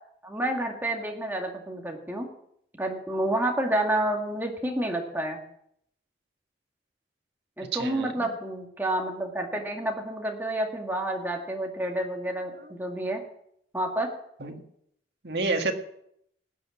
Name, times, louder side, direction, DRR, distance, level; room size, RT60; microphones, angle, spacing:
voice 1, 0.0-2.3 2.8-5.4 7.6-13.2 13.7-14.1, right 1 dB, 10° right, 1 dB, 2.1 m, -29 dB
voice 2, 7.7-8.3 12.6-12.7 14.4-14.6 15.2-15.7, right 3 dB, 60° right, 4 dB, 1.8 m, -29 dB
18.5 x 7.9 x 7.2 m, 0.74 s
head